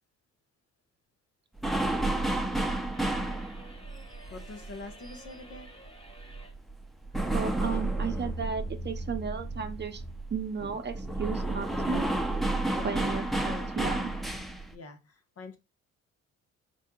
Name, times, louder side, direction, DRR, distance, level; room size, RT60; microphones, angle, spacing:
sound 1, 1.6-5.9 6.2-14.7, right 2 dB, ahead, 0.7 m, -31 dB
sound 2, 2.9-6.6, equal, 20° left, 1.2 m, -52 dB
voice 1, 4.3-5.7 12.7-14.1 14.7-15.6, left 3 dB, 50° left, 1.3 m, -45 dB
voice 2, 7.3-10.0 10.3-12.1 12.8-14.1, right 6 dB, 35° right, 0.7 m, -34 dB
4.6 x 4.3 x 2.3 m
cardioid pair, 90°, 30 cm